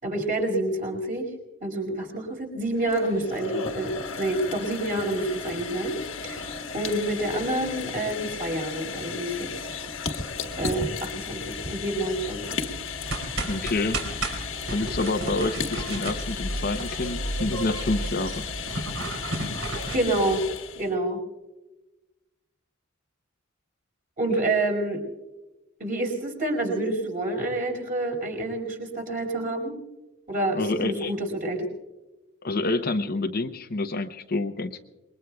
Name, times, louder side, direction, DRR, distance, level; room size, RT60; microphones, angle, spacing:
voice 1, 0.0-1.3 1.6-9.7 10.6-12.6 19.9-21.2 24.2-25.0 25.8-29.8 30.3-31.7, right 1 dB, 40° right, 1 dB, 5.1 m, -28 dB
sound 1, 2.7-20.9, left 5 dB, 65° left, 1.4 m, -35 dB
sound 2, 13.0-20.0, right 2 dB, 70° right, 3.7 m, -33 dB
voice 2, 13.4-14.0 14.7-18.5 30.5-31.1 32.4-34.8, left 2 dB, 45° left, 7 dB, 0.7 m, -28 dB
28.0 x 22.0 x 2.3 m, 1.1 s
head